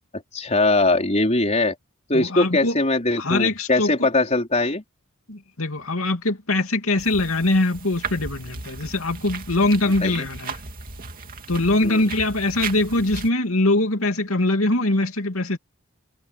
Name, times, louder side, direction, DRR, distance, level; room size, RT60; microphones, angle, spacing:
voice 1, 0.3-1.7 2.1-4.8 10.0-10.2 11.8-12.0, left 2 dB, 35° left, 4.6 m, -21 dB
voice 2, 2.1-2.8 3.2-3.9 5.3-10.6 11.5-15.6, left 2 dB, 85° left, 2.7 m, -22 dB
sound 1, 7.0-13.3, right 4 dB, 45° right, 2.5 m, -36 dB
head